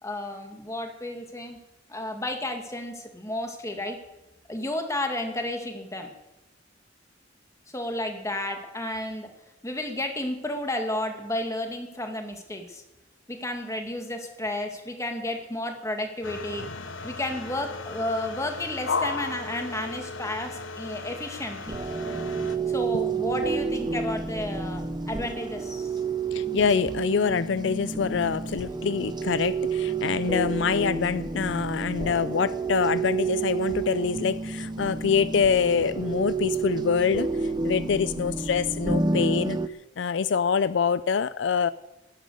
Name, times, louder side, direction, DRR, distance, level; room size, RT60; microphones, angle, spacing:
voice 1, 0.0-1.6 1.9-4.0 4.5-6.1 7.7-9.3 9.6-12.8 13.3-16.7 17.0-21.6 22.7-25.9, left 1 dB, 15° left, 4 dB, 2.0 m, -32 dB
sound 1, 16.2-22.6, left 4 dB, 90° left, 1.0 m, -35 dB
sound 2, 21.7-39.7, right 4 dB, 25° right, 0.7 m, -30 dB
voice 2, 26.3-39.6 40.0-41.7, left 6 dB, 75° left, 15 dB, 0.4 m, -25 dB
11.5 x 10.5 x 8.0 m, 1.0 s
head